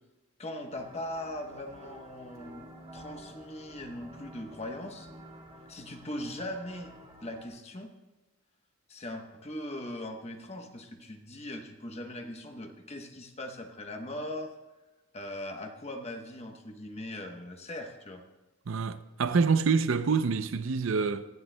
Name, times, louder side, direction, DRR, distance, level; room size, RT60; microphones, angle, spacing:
voice 1, 0.4-2.7 2.9-5.1 5.7-7.9 8.9-14.5 15.1-18.2, left 1 dB, 30° left, 0.9 m, -40 dB
sound 1, 0.7-7.5, right 1 dB, 30° right, 2.2 m, -50 dB
voice 2, 18.7-21.3, right 5 dB, 75° right, 0.5 m, -26 dB
18.5 x 12.5 x 2.2 m
head